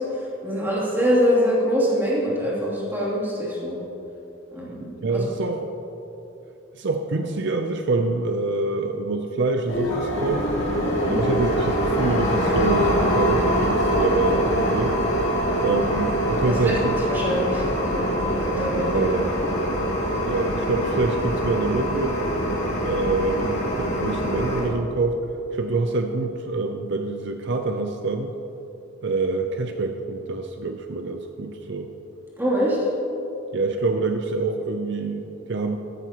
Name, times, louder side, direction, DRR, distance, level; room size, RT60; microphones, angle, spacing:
voice 1, 0.0-3.8 4.5-5.2 10.9-11.2 16.4-17.6 17.9-18.1 18.4-19.2 32.4-32.9, equal, 10° right, -7 dB, 2.9 m, -24 dB
voice 2, 5.0-5.6 6.7-10.5 11.1-15.0 15.6-16.9 18.9-19.2 20.3-22.2 22.8-25.2 25.5-28.3 29.0-31.9 33.5-35.8, right 3 dB, 60° right, 5 dB, 0.6 m, -26 dB
sound 1, 9.7-24.7, equal, 60° left, 2.4 m, -24 dB
14.0 x 12.0 x 3.0 m, 3.0 s
head